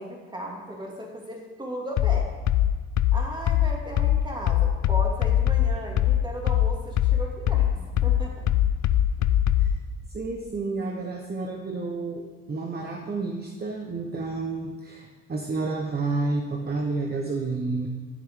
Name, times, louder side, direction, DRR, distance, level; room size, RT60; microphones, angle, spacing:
voice 1, 0.0-2.3 3.1-8.3, right 1 dB, 15° right, -1 dB, 2.6 m, -36 dB
sound 1, 2.0-9.8, left 11 dB, 65° left, 0.6 m, -22 dB
voice 2, 10.1-17.9, right 3 dB, 30° right, 2 dB, 1.1 m, -30 dB
13.5 x 7.8 x 3.8 m, 1.4 s
cardioid pair, 90°, 30 cm